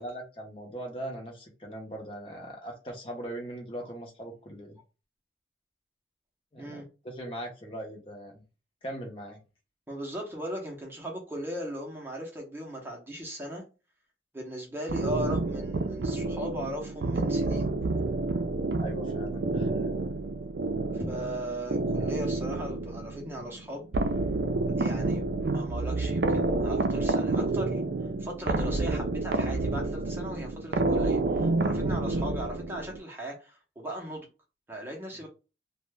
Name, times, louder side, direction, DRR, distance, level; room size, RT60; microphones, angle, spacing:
voice 1, 0.0-4.8 6.5-8.4 8.8-9.4 18.8-20.0, right 1 dB, 30° left, 0.7 m, -40 dB
voice 2, 9.9-13.6 14.3-17.7 20.9-23.9 24.8-25.2 25.5-27.8 28.2-34.3 34.7-35.3, equal, 10° right, 0.6 m, -38 dB
sound 1, 14.9-33.0, right 2 dB, 60° right, 0.4 m, -29 dB
2.7 x 2.1 x 3.2 m
head